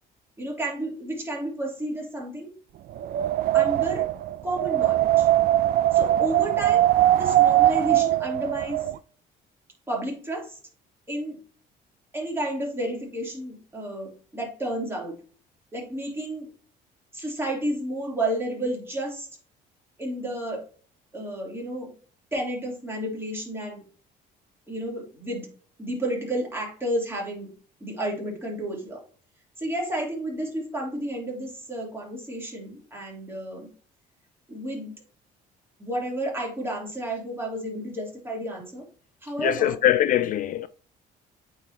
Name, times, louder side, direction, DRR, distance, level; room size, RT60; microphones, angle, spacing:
voice 1, 0.4-2.5 3.5-4.0 4.4-5.3 5.9-6.9 7.1-8.9 9.9-10.6 11.1-11.4 12.1-15.2 15.7-16.5 17.1-19.3 20.0-20.6 21.1-21.9 22.3-23.8 24.7-25.5 25.8-27.5 27.8-29.0 29.6-33.7 34.5-34.9 35.8-38.8 39.2-39.7, right 1 dB, 15° right, 3.0 m, -31 dB
Wind, 2.9-8.9, right 14 dB, 60° right, 0.4 m, -21 dB
voice 2, 39.4-40.7, left 12 dB, 50° left, 0.4 m, -22 dB
8.6 x 4.1 x 2.8 m
cardioid pair, 110°, 17 cm